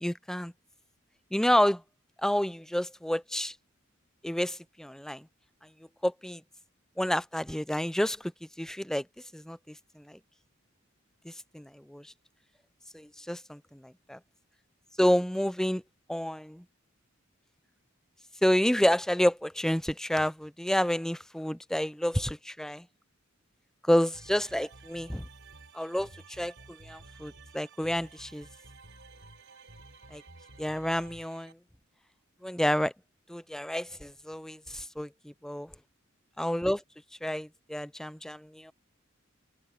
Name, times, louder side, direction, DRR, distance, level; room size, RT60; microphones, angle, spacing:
voice 1, 0.0-0.5 1.3-1.8 2.2-3.5 4.2-5.3 6.0-6.4 7.0-8.3 8.6-9.0 9.3-10.2 11.2-12.1 12.9-13.6 14.1-14.2 15.0-15.8 16.1-16.6 18.4-22.9 23.9-25.3 25.7-28.5 30.1-30.2 30.6-31.6 32.4-32.9 33.3-35.7 36.4-36.8 37.2-38.7, equal, 5° left, 0.5 m, -29 dB
sound 1, 24.1-31.5, right 3 dB, 60° right, 5.6 m, -52 dB
open air
head